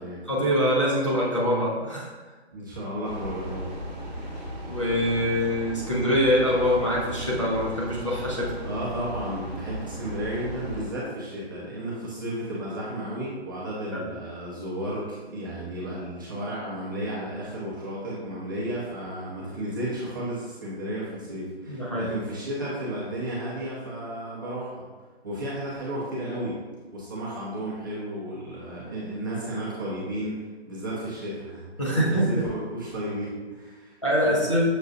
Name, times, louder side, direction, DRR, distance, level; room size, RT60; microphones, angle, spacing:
voice 1, 0.3-2.1 4.7-8.5 13.9-14.1 21.7-22.1 31.8-32.3 34.0-34.7, equal, 30° left, -6 dB, 0.5 m, -24 dB
voice 2, 2.5-3.7 8.6-24.9 25.2-26.6 26.9-30.4 30.7-31.9 32.3-34.5, right 1 dB, 20° right, -8 dB, 0.7 m, -33 dB
Train, 3.0-10.9, equal, 40° right, 1.1 m, -36 dB
6.4 x 2.3 x 2.3 m, 1.3 s
hypercardioid pair, 160°, 33 cm